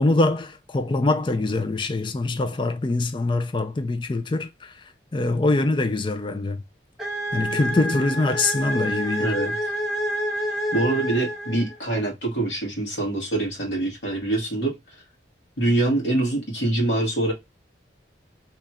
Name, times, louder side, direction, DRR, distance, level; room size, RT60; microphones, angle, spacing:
voice 1, 0.0-4.7 5.1-6.6 7.3-9.3, left 2 dB, 25° left, 0.4 m, -23 dB
sound 1, 7.0-11.9, equal, ahead, 0.7 m, -28 dB
voice 2, 9.2-9.5 10.7-14.7 15.6-17.3, right 2 dB, 75° left, 1.4 m, -24 dB
2.9 x 2.3 x 4.2 m
head